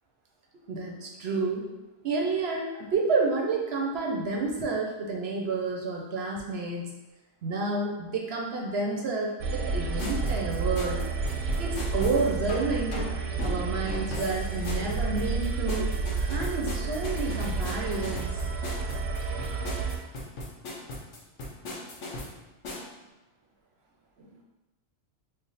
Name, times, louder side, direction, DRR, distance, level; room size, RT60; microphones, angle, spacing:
voice 1, 0.7-1.7 2.0-6.9 7.4-11.0 11.6-13.0 13.4-18.3 24.2-24.3, right 3 dB, 65° right, 0 dB, 0.7 m, -30 dB
sound 1, 9.4-20.0, right 4 dB, 85° right, 1.0 m, -30 dB
sound 2, 10.0-22.9, left 2 dB, 70° left, 1.0 m, -39 dB
3.3 x 2.1 x 3.9 m, 1.0 s
omnidirectional pair, 1.3 m